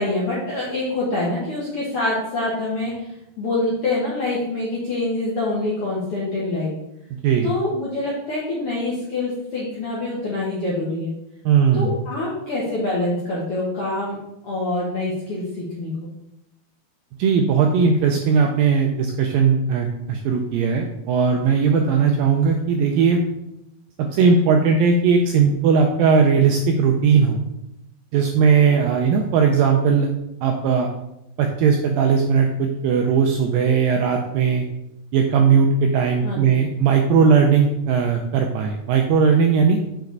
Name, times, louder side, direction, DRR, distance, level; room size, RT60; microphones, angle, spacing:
voice 1, 0.0-6.7 7.4-11.1 11.7-14.2 14.4-16.1 36.2-36.6, left 2 dB, 70° left, -6 dB, 1.3 m, -25 dB
voice 2, 11.5-11.9 17.2-23.2 24.1-27.4 28.1-30.1 30.4-30.9 31.4-34.6 35.1-39.8, right 6 dB, 85° right, 3 dB, 2.1 m, -18 dB
6.5 x 4.8 x 4.5 m, 0.87 s
omnidirectional pair, 4.6 m